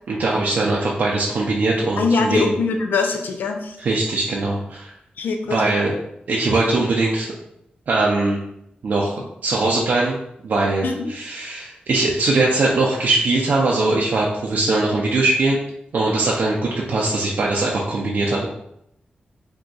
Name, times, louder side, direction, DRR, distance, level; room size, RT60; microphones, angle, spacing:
voice 1, 0.1-2.5 3.8-4.9 5.5-5.9 6.3-7.3 7.9-8.4 8.8-9.2 9.4-10.2 10.4-15.6 15.9-18.5, right 2 dB, 60° right, -3 dB, 0.4 m, -21 dB
voice 2, 2.0-3.8 5.2-5.6 10.8-11.1, left 4 dB, 85° left, 4 dB, 0.4 m, -22 dB
3.9 x 2.7 x 2.3 m, 0.80 s
wide cardioid pair, 160°, 3 cm